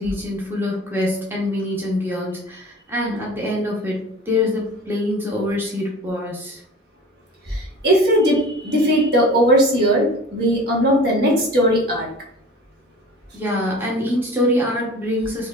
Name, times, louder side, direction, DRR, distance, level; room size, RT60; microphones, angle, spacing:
voice 1, 0.0-6.6 13.3-15.5, left 1 dB, 10° right, -4 dB, 0.8 m, -24 dB
voice 2, 7.4-12.1, equal, 60° right, -3 dB, 1.1 m, -18 dB
4.4 x 2.6 x 2.3 m, 0.68 s
head